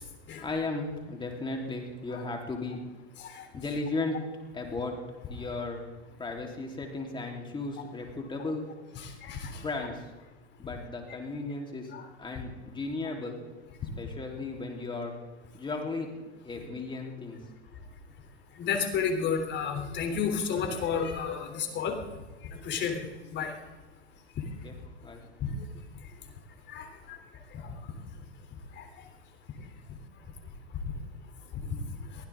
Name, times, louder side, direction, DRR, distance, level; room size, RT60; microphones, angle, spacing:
voice 1, 0.4-2.8 3.5-4.2 4.5-4.9 5.3-5.8 6.2-8.7 9.6-10.1 10.6-11.9 12.2-13.4 14.0-15.2 15.5-16.1 16.4-17.4 24.6-24.7 25.0-25.2, left 3 dB, 15° left, 1 dB, 3.5 m, -35 dB
voice 2, 9.0-9.6 11.9-12.0 18.6-22.0 22.6-23.0 23.3-23.5 25.4-25.5 26.7-27.2 27.5-27.7 28.8-28.9 31.7-31.8, left 6 dB, 35° left, 4 dB, 3.3 m, -31 dB
23.0 x 15.5 x 3.7 m, 1.2 s
hypercardioid pair, 125°, 33 cm